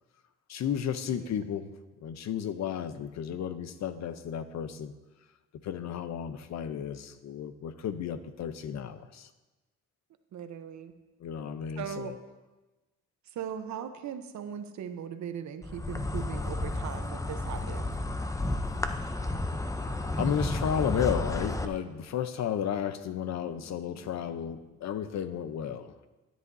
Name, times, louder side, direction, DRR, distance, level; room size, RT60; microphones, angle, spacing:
voice 1, 0.5-1.7 2.0-4.9 5.6-9.3 11.2-12.1 19.5-26.0, left 8 dB, 65° left, 11 dB, 0.7 m, -33 dB
voice 2, 10.3-10.9 11.8-12.2 13.3-17.8, right 8 dB, 70° right, 8 dB, 0.9 m, -39 dB
Insect, 15.6-21.7, left 2 dB, 10° left, 0.6 m, -32 dB
12.5 x 10.5 x 2.7 m, 1.1 s
cardioid pair, 90°, 30 cm